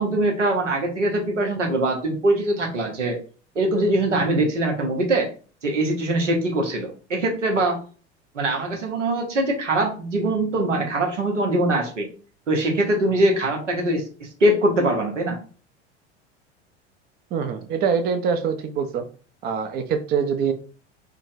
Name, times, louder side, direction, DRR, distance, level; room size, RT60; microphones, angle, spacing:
voice 1, 0.0-3.2 3.5-5.3 5.6-7.8 8.3-12.1 12.5-15.4, right 1 dB, 90° right, 1 dB, 0.9 m, -22 dB
voice 2, 17.3-19.0 19.4-20.5, right 6 dB, 30° right, 9 dB, 0.4 m, -24 dB
3.8 x 2.1 x 2.6 m, 0.39 s
hypercardioid pair, 80°, 35 cm